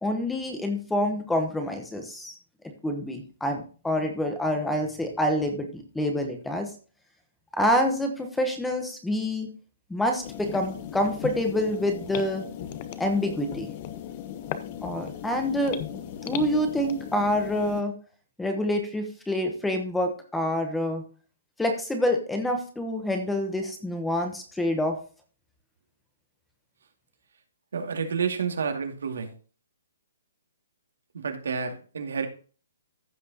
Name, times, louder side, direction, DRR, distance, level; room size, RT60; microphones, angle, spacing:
voice 1, 0.0-2.3 2.8-6.7 7.6-9.5 9.9-12.4 13.0-13.7 14.8-15.8 16.2-17.9 18.4-21.0 21.6-25.0, left 1 dB, 5° left, 5 dB, 1.0 m, -27 dB
sound 1, 10.2-17.8, left 10 dB, 25° left, 0.7 m, -37 dB
voice 2, 27.7-29.3 31.2-32.3, right 6 dB, 80° right, 4 dB, 2.3 m, -29 dB
15.0 x 6.0 x 2.9 m, 0.38 s
hypercardioid pair, 175°, 0 cm